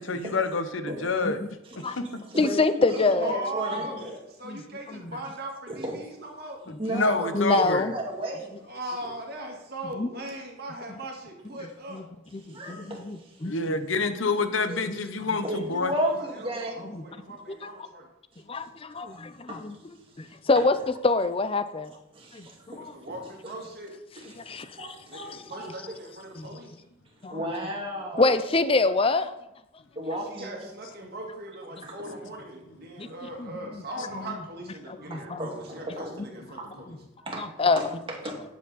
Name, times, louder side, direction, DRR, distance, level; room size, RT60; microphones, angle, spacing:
voice 1, 0.1-1.4 1.8-2.0 6.9-7.9 13.4-15.9, left 3 dB, 80° left, 9 dB, 1.0 m, -27 dB
voice 2, 1.8-4.2 5.7-5.9 6.8-8.5 12.5-13.4 14.7-14.8 15.4-16.8 19.5-19.6 22.1-22.8 24.2-25.9 27.3-28.4 30.0-30.7 31.8-32.1 35.1-36.1 36.6-36.7 37.2-38.4, equal, 30° right, -1 dB, 2.1 m, -34 dB
voice 3, 2.4-3.4 4.4-4.6 4.9-5.1 6.7-6.8 7.3-7.9 9.9-10.1 11.9-12.1 12.3-13.8 14.9-15.0 16.9-17.1 17.5-17.6 18.5-19.8 20.2-21.9 22.3-22.5 22.7-22.9 24.4-24.9 25.1-25.4 26.3-26.6 27.2-27.4 28.2-29.3 33.0-33.1 33.4-33.8 34.1-34.4 35.1-35.5 36.9-37.0 37.4-37.8, left 3 dB, 30° left, 12 dB, 0.5 m, -26 dB
voice 4, 2.9-6.6 8.7-12.0 16.1-18.1 22.7-23.9 25.1-26.7 30.3-37.0, right 1 dB, 50° right, 0 dB, 2.1 m, -39 dB
11.0 x 7.6 x 4.2 m, 0.89 s
head